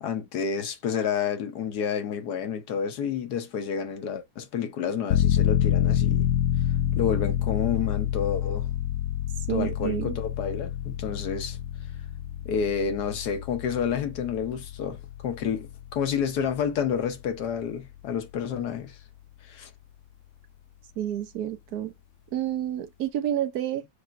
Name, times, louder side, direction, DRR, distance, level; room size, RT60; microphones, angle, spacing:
voice 1, 0.0-6.3 7.0-8.7 9.5-11.6 12.4-19.0 19.4-19.7, left 7 dB, 85° left, 1.5 m, -29 dB
sound 1, 5.1-17.6 18.0-18.1, left 11 dB, 70° left, 0.9 m, -28 dB
voice 2, 9.5-10.2 21.0-21.9 22.3-23.9, right 11 dB, 75° right, 1.3 m, -29 dB
7.0 x 2.8 x 2.5 m
omnidirectional pair, 1.7 m